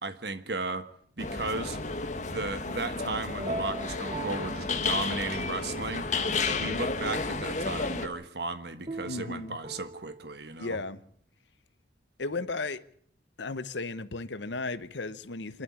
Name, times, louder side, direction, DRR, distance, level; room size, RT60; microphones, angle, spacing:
voice 1, 0.0-0.9 1.2-1.8 2.2-6.1 6.5-10.8, right 3 dB, 60° right, 1.4 m, -35 dB
sound 1, 1.2-8.1, left 3 dB, 40° left, 1.6 m, -32 dB
sound 2, 3.4-5.5 6.0-7.1 8.9-10.3, right 2 dB, 30° right, 1.3 m, -40 dB
voice 2, 9.1-9.6 10.6-11.0 12.2-12.8 13.4-15.6, left 3 dB, 70° left, 1.0 m, -35 dB
25.0 x 12.0 x 8.6 m
head